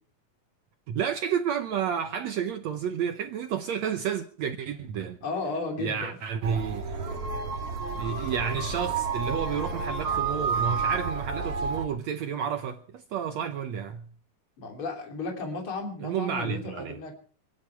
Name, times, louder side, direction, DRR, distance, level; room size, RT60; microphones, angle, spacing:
voice 1, 0.9-5.2 5.8-6.9 8.0-14.1 16.0-17.0, right 8 dB, 75° right, 1.6 m, -31 dB
voice 2, 5.2-6.2 14.6-17.1, left 3 dB, 35° left, 3.7 m, -34 dB
sound 1, 6.4-11.8, right 5 dB, 45° right, 3.2 m, -30 dB
25.5 x 10.5 x 4.5 m
omnidirectional pair, 4.2 m